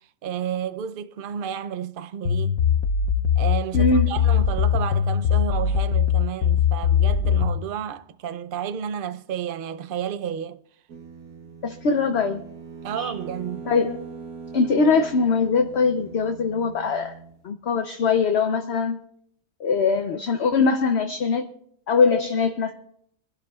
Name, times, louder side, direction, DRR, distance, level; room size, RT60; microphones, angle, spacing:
voice 1, 0.2-2.6 3.4-10.6 12.8-13.7, right 9 dB, 55° right, 0.6 m, -31 dB
sound 1, 2.3-7.6, left 8 dB, 75° left, 1.2 m, -21 dB
voice 2, 3.7-4.2 11.6-12.4 12.9-13.1 13.7-14.0 14.5-17.1 17.4-19.0 19.6-21.5 21.9-22.8, left 4 dB, 55° left, 0.9 m, -22 dB
sound 2, 10.9-17.4, right 5 dB, 75° right, 1.7 m, -41 dB
25.0 x 11.5 x 2.4 m
omnidirectional pair, 1.6 m